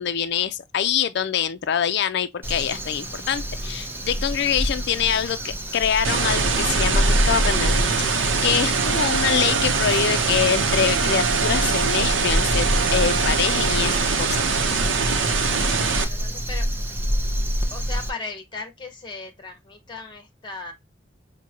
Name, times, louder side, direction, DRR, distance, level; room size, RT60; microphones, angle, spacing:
voice 1, 0.0-14.5 15.4-15.5, left 8 dB, 60° left, 0.4 m, -25 dB
Crow, 2.4-18.1, equal, 10° right, 0.6 m, -28 dB
sound 1, 6.0-16.0, right 4 dB, 75° right, 0.7 m, -23 dB
Wind instrument woodwind instrument, 8.7-14.0, right 5 dB, 55° right, 0.3 m, -32 dB
voice 2, 15.5-16.6 17.7-20.7, left 3 dB, 25° left, 1.2 m, -37 dB
6.1 x 2.2 x 2.8 m
head